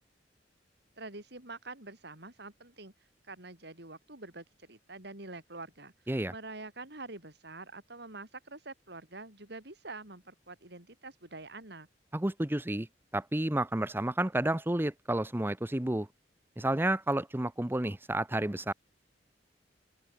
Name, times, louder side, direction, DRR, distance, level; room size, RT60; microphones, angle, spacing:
voice 1, 1.0-2.9 3.3-5.9 6.3-11.9, right 3 dB, 65° right, 4.9 m, -46 dB
voice 2, 12.1-12.9 13.1-16.1 16.6-18.7, right 1 dB, 10° right, 0.8 m, -30 dB
open air
head